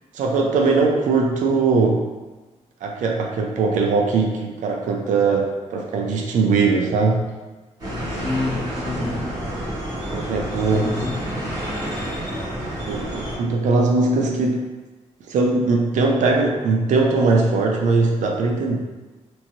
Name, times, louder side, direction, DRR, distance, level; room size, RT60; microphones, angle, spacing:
voice 1, 0.1-2.0 2.8-7.2 10.1-10.9 12.9-14.6 15.3-18.8, right 3 dB, 90° right, 1 dB, 0.4 m, -20 dB
sound 1, 7.8-13.4, equal, 35° right, 1.3 m, -29 dB
voice 2, 8.1-9.3 10.6-11.6, left 3 dB, 25° left, -3 dB, 0.6 m, -29 dB
3.0 x 2.6 x 2.7 m, 1.2 s
wide cardioid pair, 145°, 12 cm